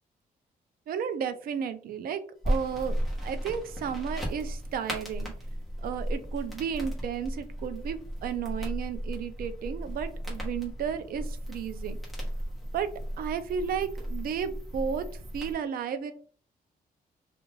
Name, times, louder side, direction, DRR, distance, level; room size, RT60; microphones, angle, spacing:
voice 1, 0.9-2.9 3.2-5.3 5.8-12.0 12.7-12.9 13.2-15.1 15.3-16.1, right 7 dB, 70° right, 10 dB, 0.4 m, -33 dB
sound 1, 2.4-15.5, equal, ahead, 0.9 m, -35 dB
2.4 x 2.3 x 3.1 m, 0.43 s
wide cardioid pair, 175°, 16 cm